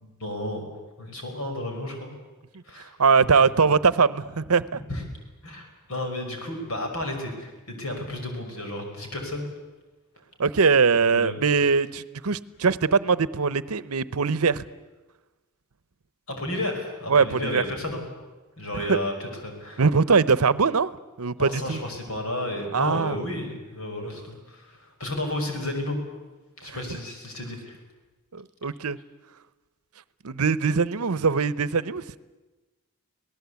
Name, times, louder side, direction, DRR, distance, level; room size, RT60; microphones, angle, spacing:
voice 1, 0.0-2.1 2.7-2.9 4.9-5.0 5.4-9.5 11.1-11.4 16.3-18.0 18.6-19.8 21.4-26.0 26.6-27.8, left 1 dB, 70° left, 3 dB, 5.7 m, -32 dB
voice 2, 3.0-4.8 10.4-14.6 17.1-17.6 18.7-19.0 19.8-20.9 21.2-21.8 22.7-23.2 26.7-26.8 28.3-29.0 30.2-32.0, right 5 dB, 75° right, 18 dB, 0.8 m, -22 dB
26.0 x 18.0 x 8.3 m, 1.2 s
head